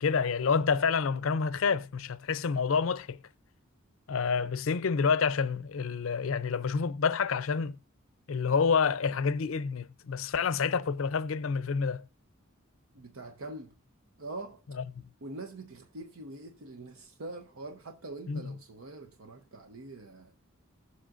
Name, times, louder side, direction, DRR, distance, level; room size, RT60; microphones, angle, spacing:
voice 1, 0.0-3.2 4.1-7.8 8.3-12.1 14.8-15.0 18.3-18.5, left 5 dB, 75° left, 0.5 m, -28 dB
voice 2, 12.9-13.7 14.2-14.6 15.2-20.3, right 2 dB, 90° right, 0.8 m, -44 dB
20.5 x 7.4 x 2.5 m
head